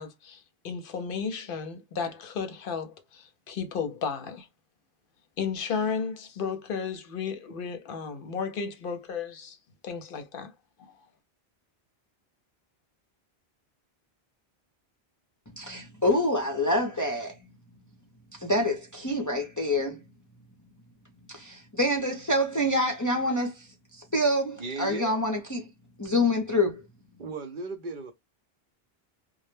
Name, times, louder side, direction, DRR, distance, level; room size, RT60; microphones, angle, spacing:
voice 1, 0.0-4.5 5.4-9.6 9.8-10.5 10.8-10.9, left 6 dB, 65° left, 0.7 m, -33 dB
voice 2, 15.6-17.4 18.4-20.0 21.3-25.7 26.0-26.8, left 1 dB, 25° left, 0.4 m, -26 dB
voice 3, 24.6-25.2 27.2-28.1, right 3 dB, 60° right, 0.7 m, -36 dB
2.1 x 2.0 x 3.1 m
omnidirectional pair, 1.0 m